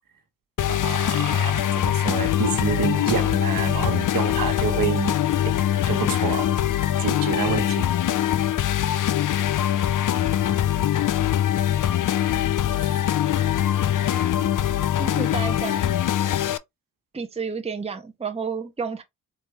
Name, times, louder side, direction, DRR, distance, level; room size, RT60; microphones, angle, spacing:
sound 1, 0.6-16.6, left 11 dB, 55° left, 0.5 m, -23 dB
voice 1, 0.7-5.2 5.4-5.6 5.9-6.5 7.0-7.9 12.8-12.9, right 6 dB, 60° right, 1.2 m, -28 dB
voice 2, 15.0-15.9 17.1-19.0, right 5 dB, 15° right, 0.8 m, -31 dB
4.5 x 2.6 x 3.1 m
cardioid pair, 55°, 38 cm